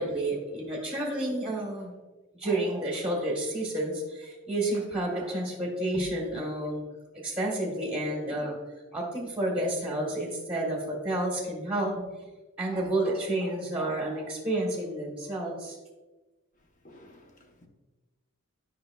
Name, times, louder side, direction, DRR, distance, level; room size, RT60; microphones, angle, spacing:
voice 1, 0.0-1.9 2.3-6.8 7.2-12.0 12.6-15.8, right 1 dB, 5° right, 1.2 m, -30 dB
voice 2, 16.8-17.7, left 1 dB, 40° left, 0.8 m, -54 dB
9.5 x 5.3 x 2.3 m
head